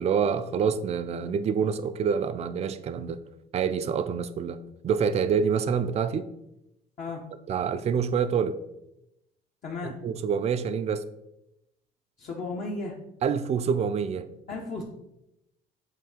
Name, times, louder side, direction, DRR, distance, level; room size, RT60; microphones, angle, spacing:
voice 1, 0.0-3.2 3.5-4.6 4.8-6.3 7.5-8.6 10.0-11.0 13.2-14.3, right 6 dB, 40° right, 0.4 m, -26 dB
voice 2, 9.6-10.0 12.2-13.0 14.5-14.8, left 3 dB, 50° left, 1.0 m, -34 dB
7.8 x 2.7 x 4.9 m
cardioid pair, 110°, 17 cm